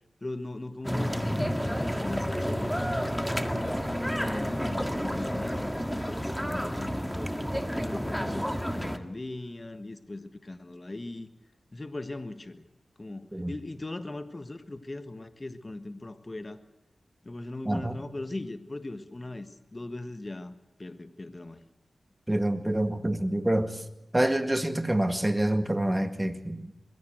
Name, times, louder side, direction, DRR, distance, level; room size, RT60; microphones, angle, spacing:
voice 1, 0.2-2.7 3.4-7.3 7.8-11.3 11.7-12.6 13.0-16.6 17.2-21.6, left 2 dB, 35° left, 10 dB, 1.4 m, -39 dB
sound 1, 0.8-9.0, equal, ahead, 1.7 m, -30 dB
voice 2, 17.7-18.0 22.3-23.8 24.1-26.7, right 1 dB, 15° right, 9 dB, 1.9 m, -27 dB
22.0 x 16.5 x 7.9 m, 0.97 s
cardioid pair, 45°, 0 cm